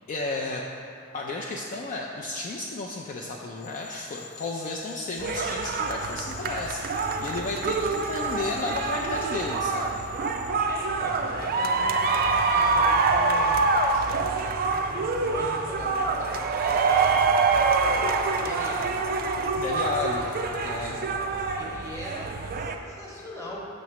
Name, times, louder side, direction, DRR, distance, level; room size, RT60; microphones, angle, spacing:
voice 1, 0.1-0.7 1.1-10.0 19.5-21.1, left 2 dB, 40° left, -2 dB, 0.3 m, -33 dB
sound 1, 3.6-10.5, left 6 dB, 80° left, 0.9 m, -46 dB
sound 2, 5.2-22.7, right 4 dB, 45° right, 0.3 m, -25 dB
voice 2, 8.3-8.7 10.7-14.1 14.6-17.2 18.3-19.0 19.5-20.8 21.5-23.7, equal, 15° left, -4 dB, 1.0 m, -41 dB
6.3 x 3.1 x 5.8 m, 2.7 s
head